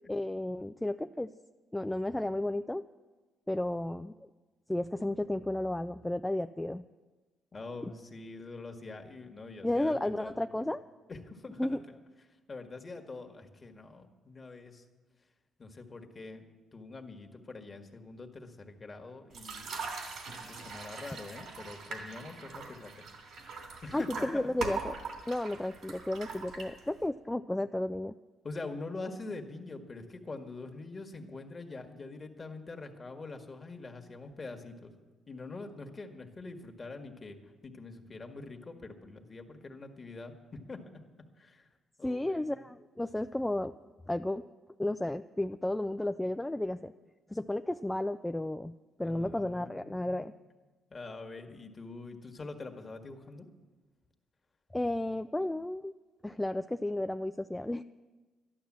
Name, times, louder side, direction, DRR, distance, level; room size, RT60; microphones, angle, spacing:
voice 1, 0.1-1.3 1.7-2.9 3.5-4.1 4.7-6.9 9.6-10.8 11.6-11.8 23.9-24.9 25.3-28.1 42.0-43.7 44.1-44.5 44.8-46.9 47.3-50.3 54.7-55.9 56.2-57.8, left 1 dB, 10° left, 9 dB, 0.3 m, -33 dB
voice 2, 7.5-10.5 11.1-12.0 12.3-14.8 15.6-20.2 20.4-23.1 23.8-24.5 28.4-34.9 35.3-40.8 41.3-41.7 42.0-42.7 49.0-50.3 50.9-53.5, left 3 dB, 30° left, 5 dB, 1.6 m, -45 dB
sound 1, 19.3-27.1, right 4 dB, 75° right, 2.9 m, -42 dB
12.0 x 11.5 x 7.4 m, 1.2 s
cardioid pair, 90°, 0 cm